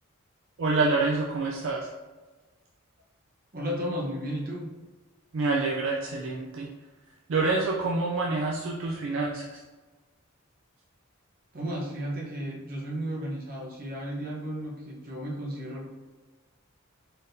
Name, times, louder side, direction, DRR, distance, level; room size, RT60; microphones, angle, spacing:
voice 1, 0.6-1.9 5.3-6.7 7.3-9.6, right 3 dB, 65° right, -1 dB, 0.4 m, -27 dB
voice 2, 3.5-4.7 11.5-15.9, equal, 45° right, -3 dB, 0.9 m, -34 dB
4.2 x 3.5 x 2.6 m, 1.2 s
head